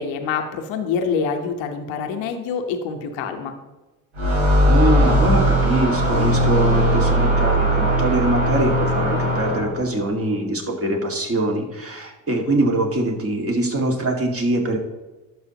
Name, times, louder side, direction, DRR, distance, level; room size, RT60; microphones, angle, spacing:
voice 1, 0.0-3.5, left 5 dB, 85° left, 5 dB, 1.1 m, -26 dB
sound 1, 4.2-9.9, equal, 90° right, 3.1 m, -18 dB
voice 2, 4.6-14.8, right 1 dB, 30° right, 1 dB, 1.9 m, -23 dB
11.5 x 6.4 x 2.9 m, 1.1 s
supercardioid pair, 80°, 44 cm